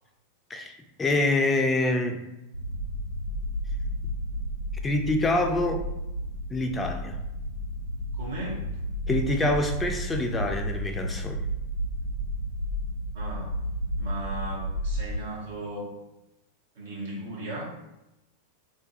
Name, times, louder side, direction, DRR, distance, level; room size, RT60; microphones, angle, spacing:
voice 1, 1.0-2.2 4.8-5.9 6.5-7.2 9.1-11.4, left 2 dB, 15° left, 4 dB, 0.3 m, -26 dB
sound 1, 2.5-15.2, equal, 90° left, 0.4 m, -32 dB
voice 2, 8.1-8.7 13.1-13.6 14.0-15.9 16.7-17.6, right 1 dB, 60° right, -5 dB, 0.7 m, -36 dB
2.3 x 2.2 x 2.6 m, 0.92 s
figure-of-eight pair, 90°, 0 cm